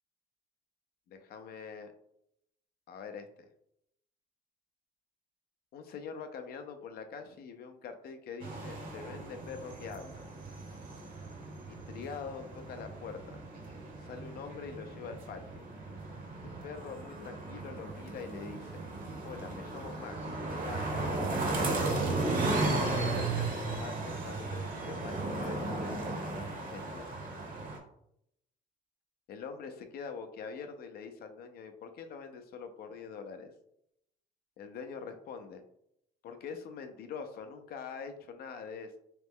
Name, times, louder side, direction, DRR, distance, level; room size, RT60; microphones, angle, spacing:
voice 1, 1.1-1.9 2.9-3.5 5.7-10.2 11.7-13.4 14.0-15.6 16.4-18.9 19.2-20.3 20.6-21.9 22.6-27.1 29.3-33.5 34.6-35.6 36.2-39.0, left 6 dB, 65° left, 7 dB, 0.6 m, -44 dB
sound 1, 8.4-27.8, right 2 dB, 55° right, 1.0 m, -35 dB
3.2 x 3.0 x 3.6 m, 0.75 s
cardioid pair, 110°, 17 cm